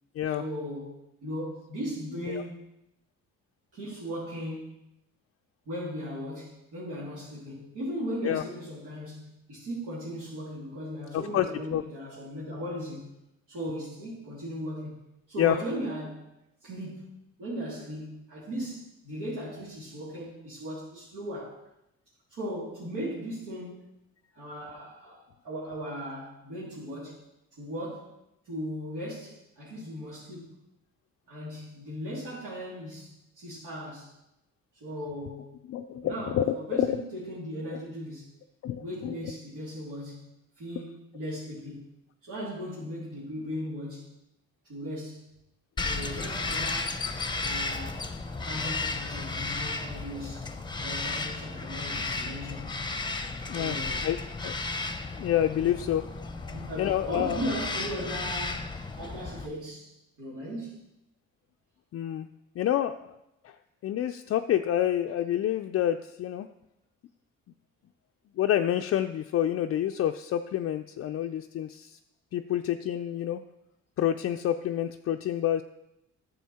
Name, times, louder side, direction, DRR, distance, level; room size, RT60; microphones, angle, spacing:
voice 1, 0.3-2.6 3.7-4.7 5.7-13.1 13.5-15.0 15.3-16.3 16.6-17.1 17.4-21.6 22.3-23.9 24.4-27.2 27.6-28.1 28.4-30.6 31.3-34.1 34.8-35.6 36.0-38.3 38.8-41.9 42.2-44.1 44.6-45.2 45.8-47.0 47.4-48.0 48.4-52.8 53.5-54.1 56.4-59.9 60.2-60.8, equal, 85° right, -8 dB, 2.9 m, -37 dB
voice 2, 11.1-11.5 11.7-11.8 15.4-15.6 35.7-37.1 37.7-37.8 38.6-39.2 53.5-53.8 54.0-54.5 55.2-56.1 56.8-57.4 61.9-62.3 62.6-63.2 63.4-63.6 63.8-66.5 68.4-72.0 72.3-73.4 74.0-75.6, left 11 dB, 50° left, 6 dB, 0.4 m, -28 dB
Bird vocalization bird call bird song, 45.8-59.5, left 3 dB, 15° left, 0.7 m, -34 dB
9.3 x 7.0 x 4.3 m, 0.87 s
cardioid pair, 90°, 30 cm